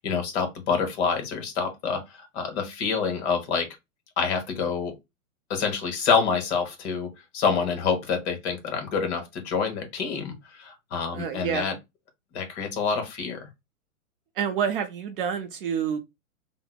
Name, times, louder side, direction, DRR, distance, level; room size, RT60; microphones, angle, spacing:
voice 1, 0.0-3.7 4.2-4.9 5.5-11.7 12.3-13.4, left 6 dB, 50° left, 1.1 m, -27 dB
voice 2, 11.1-11.7 14.4-16.0, right 7 dB, 40° right, 0.5 m, -28 dB
3.3 x 2.0 x 2.3 m
hypercardioid pair, 115°, 43 cm